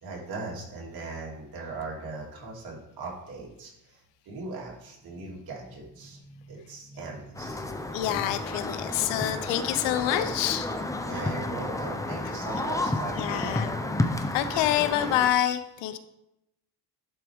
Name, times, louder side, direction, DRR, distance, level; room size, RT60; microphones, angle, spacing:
voice 1, 0.0-8.0 8.8-9.4 11.1-13.8, right 3 dB, 55° right, -3 dB, 2.8 m, -39 dB
sound 1, 7.3-15.3, left 2 dB, 10° left, 0.6 m, -31 dB
voice 2, 7.9-10.7 13.2-13.7 14.3-16.0, left 12 dB, 90° left, 12 dB, 0.8 m, -27 dB
11.0 x 4.5 x 3.5 m, 0.85 s
cardioid pair, 95°, 42 cm